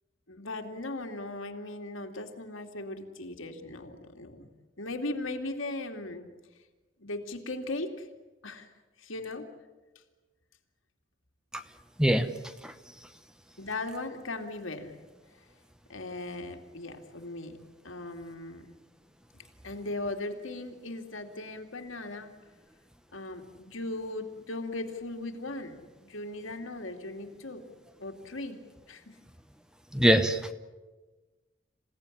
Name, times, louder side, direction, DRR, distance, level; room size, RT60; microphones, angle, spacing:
voice 1, 0.3-4.5 4.8-6.3 7.0-8.1 8.4-8.7 9.0-9.5 13.6-14.9 15.9-17.6 17.8-18.7 19.6-22.3 23.1-27.6 28.0-28.6 28.9-29.2, left 2 dB, 85° left, 4 dB, 2.7 m, -38 dB
voice 2, 29.9-30.4, equal, 5° right, 9 dB, 1.0 m, -22 dB
27.5 x 17.0 x 10.0 m, 1.2 s
head